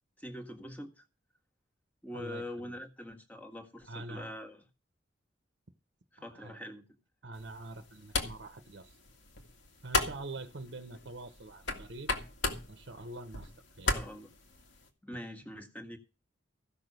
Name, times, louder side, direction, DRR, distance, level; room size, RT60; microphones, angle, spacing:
voice 1, 0.2-1.0 2.0-4.6 6.1-6.8 13.9-14.3 15.0-16.0, left 1 dB, 10° left, 1.6 m, -44 dB
voice 2, 2.1-2.8 3.9-4.3 6.2-6.6 7.2-9.0 9.8-12.1 12.7-13.5 13.8-13.9, right 2 dB, 65° right, 1.0 m, -45 dB
sound 1, 7.3-14.9, left 3 dB, 75° left, 2.1 m, -37 dB
15.0 x 6.3 x 6.7 m
head